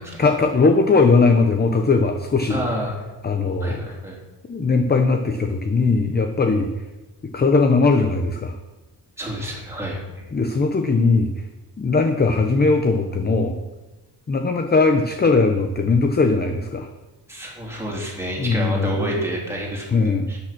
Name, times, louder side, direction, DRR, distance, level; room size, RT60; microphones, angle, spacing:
voice 1, 0.2-2.6 3.2-3.8 4.5-6.7 7.3-8.6 10.3-11.3 11.8-13.6 14.3-16.9 18.4-19.2 19.9-20.3, left 3 dB, 25° left, 6 dB, 0.7 m, -19 dB
voice 2, 2.5-3.0 3.6-4.2 9.2-10.3 17.3-19.8 20.3-20.4, right 1 dB, 5° right, -3 dB, 3.4 m, -29 dB
12.5 x 8.7 x 6.0 m, 1.1 s
wide cardioid pair, 160°, 42 cm